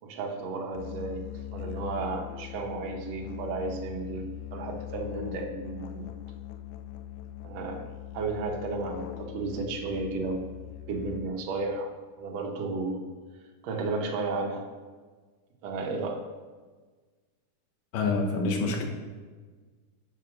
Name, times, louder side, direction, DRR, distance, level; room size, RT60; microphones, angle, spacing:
voice 1, 0.0-4.3 4.5-6.1 7.4-10.5 10.9-11.9 12.2-13.0 13.6-14.7 15.6-16.3, right 3 dB, 65° right, 1 dB, 2.0 m, -33 dB
Musical instrument, 0.7-11.5, left 12 dB, 85° left, 2.0 m, -41 dB
voice 2, 17.9-18.8, left 3 dB, 65° left, 2 dB, 1.2 m, -27 dB
6.7 x 6.2 x 6.2 m, 1.4 s
omnidirectional pair, 3.5 m